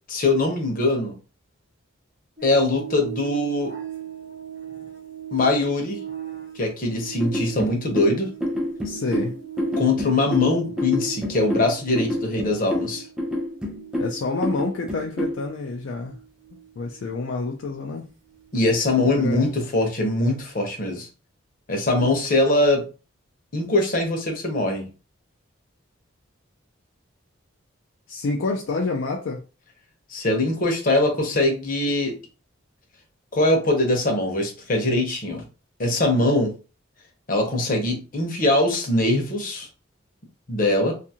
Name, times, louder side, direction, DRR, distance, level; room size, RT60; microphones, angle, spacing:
voice 1, 0.1-1.2 2.4-3.7 5.3-6.0 6.5-8.3 9.8-13.1 18.5-21.1 21.7-22.8 23.5-24.9 30.1-32.1 33.3-35.4 35.8-36.5 37.3-39.7 40.5-40.9, left 2 dB, 40° left, 0.7 m, -22 dB
sound 1, 2.4-18.9 19.2-19.4, right 10 dB, 60° right, 0.9 m, -40 dB
sound 2, 7.2-15.4, left 1 dB, 5° right, 0.5 m, -28 dB
voice 2, 8.8-9.4 14.0-16.2 16.8-18.0 19.2-19.5 28.1-29.4, left 3 dB, 65° left, 0.4 m, -28 dB
2.5 x 2.4 x 2.8 m
head